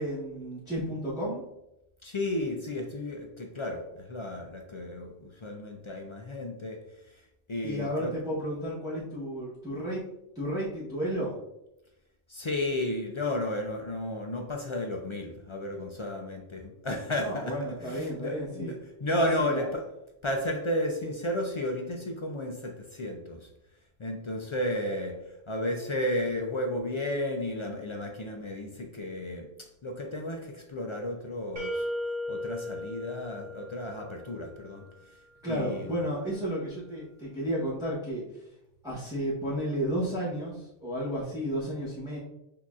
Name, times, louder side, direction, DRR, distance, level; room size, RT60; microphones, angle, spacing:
voice 1, 0.0-1.4 7.6-10.0 10.3-11.3 17.2-18.7 19.1-19.6 35.4-38.4 38.8-42.2, equal, 5° right, -8 dB, 0.9 m, -32 dB
voice 2, 2.0-7.2 7.5-8.1 12.3-19.9 20.2-23.5 24.0-31.9 32.3-35.2 35.4-36.0, left 1 dB, 50° left, 3 dB, 0.3 m, -33 dB
sound 1, 31.6-34.4, left 1 dB, 65° right, 1.5 m, -36 dB
6.1 x 2.8 x 2.4 m, 0.87 s
omnidirectional pair, 1.0 m